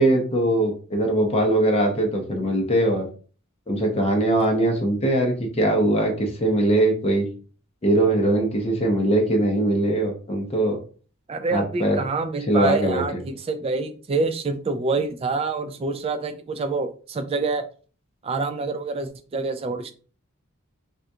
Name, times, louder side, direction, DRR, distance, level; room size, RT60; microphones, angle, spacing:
voice 1, 0.0-3.1 3.7-7.3 7.8-10.8 11.5-12.0 12.5-13.2, right 1 dB, 30° left, 2 dB, 0.6 m, -21 dB
voice 2, 11.3-17.6 18.2-19.9, right 3 dB, 25° right, 9 dB, 0.3 m, -27 dB
3.5 x 2.3 x 2.6 m, 0.39 s
head